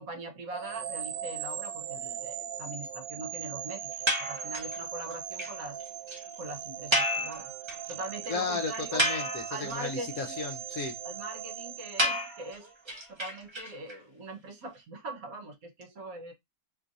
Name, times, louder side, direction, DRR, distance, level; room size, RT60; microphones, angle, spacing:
voice 1, 0.0-3.9 4.2-5.8 6.4-7.5 7.9-9.0 9.5-10.3 11.0-16.3, right 2 dB, 60° right, 1.1 m, -42 dB
sound 1, 0.5-12.7, right 9 dB, 85° right, 1.2 m, -39 dB
sound 2, 4.1-4.8 5.1-5.2 5.4-5.5 5.8-5.9 6.1-6.2 6.9-7.9 8.2-8.3 8.7-9.7 12.0-13.9, equal, 25° right, 0.6 m, -30 dB
voice 2, 8.3-11.0, left 4 dB, 65° left, 0.9 m, -34 dB
3.1 x 2.4 x 3.8 m
omnidirectional pair, 1.9 m